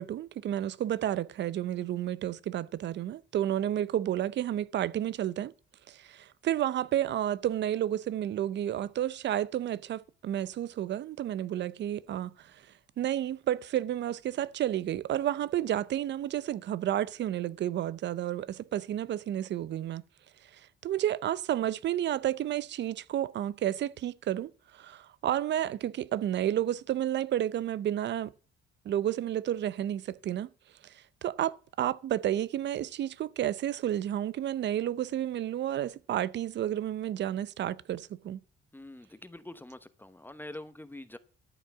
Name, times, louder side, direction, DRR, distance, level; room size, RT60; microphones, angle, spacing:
voice 1, 0.0-5.5 5.9-12.6 13.0-20.0 20.5-28.3 28.8-30.5 30.8-38.4, right 11 dB, 65° right, 0.6 m, -31 dB
voice 2, 38.7-41.2, left 1 dB, 10° left, 1.0 m, -45 dB
12.5 x 5.5 x 8.2 m
cardioid pair, 90°, 20 cm